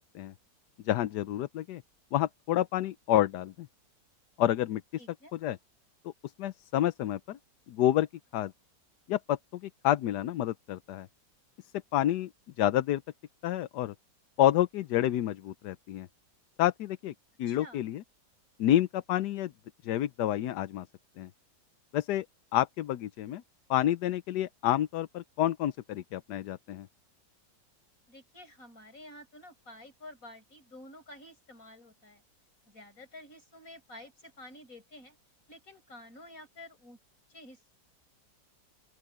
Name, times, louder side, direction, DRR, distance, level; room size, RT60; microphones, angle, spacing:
voice 1, 0.8-1.8 2.1-3.7 4.4-4.8 5.4-5.6 6.4-7.4 7.7-8.1 8.3-8.5 9.1-11.1 11.9-12.3 12.6-13.0 13.4-13.9 14.4-16.1 16.6-17.1 17.4-18.0 18.6-19.5 19.8-20.9 21.2-21.3 21.9-22.2 22.5-23.4 23.7-26.9, left 12 dB, 70° left, 1.2 m, -28 dB
voice 2, 5.0-5.3 17.4-17.8 28.1-32.2 32.7-35.2 35.5-37.0 37.3-37.7, left 1 dB, 50° left, 8.1 m, -50 dB
open air
omnidirectional pair, 1.9 m